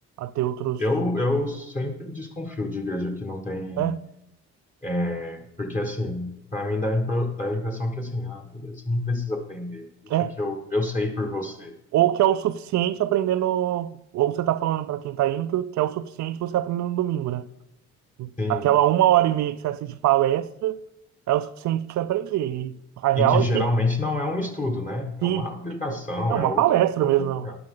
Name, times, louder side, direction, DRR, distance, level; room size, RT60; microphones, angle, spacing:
voice 1, 0.2-0.8 3.8-4.0 10.1-10.4 11.9-17.5 18.2-20.8 21.3-23.7 25.2-25.5 26.3-27.5, right 13 dB, 70° right, 0.5 m, -23 dB
voice 2, 0.8-3.9 4.8-9.9 10.2-11.7 18.4-18.7 23.1-27.6, left 2 dB, 25° left, 1.6 m, -28 dB
12.5 x 10.0 x 3.8 m
cardioid pair, 90°, 30 cm